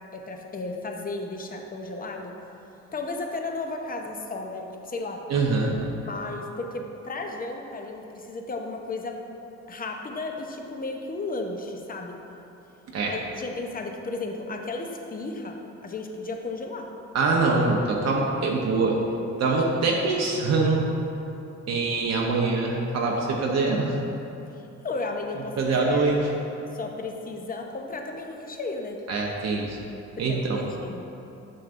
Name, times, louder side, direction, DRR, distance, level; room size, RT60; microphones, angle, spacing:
voice 1, 0.1-2.4 2.9-5.2 6.0-9.2 9.7-12.2 13.1-16.9 24.5-26.3 26.7-29.0 30.3-31.1, left 3 dB, 30° left, 3 dB, 0.7 m, -34 dB
voice 2, 5.3-5.8 12.9-13.1 17.1-19.0 19.4-20.9 21.7-24.0 25.6-26.2 29.1-29.8 30.2-30.6, right 3 dB, 60° right, -2 dB, 0.8 m, -24 dB
7.6 x 6.5 x 2.6 m, 2.9 s
cardioid pair, 90°, 30 cm